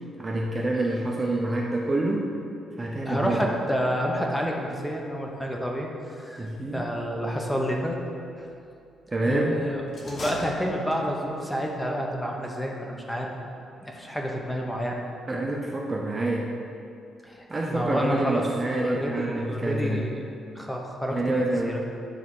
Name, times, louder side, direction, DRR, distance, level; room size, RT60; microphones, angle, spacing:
voice 1, 0.2-2.3 2.8-3.5 6.4-6.8 9.1-9.6 15.3-16.5 17.5-20.1 21.1-21.8, right 2 dB, 20° right, -1 dB, 0.6 m, -27 dB
voice 2, 3.0-6.5 6.7-8.0 8.4-8.5 9.3-13.3 13.8-15.0 17.2-18.4 18.8-20.2 20.5-21.8, equal, 5° left, 0 dB, 0.9 m, -29 dB
sound 1, 9.9-11.3, left 1 dB, 35° left, 1.1 m, -38 dB
9.9 x 3.5 x 6.1 m, 2.5 s
cardioid pair, 135°, 0 cm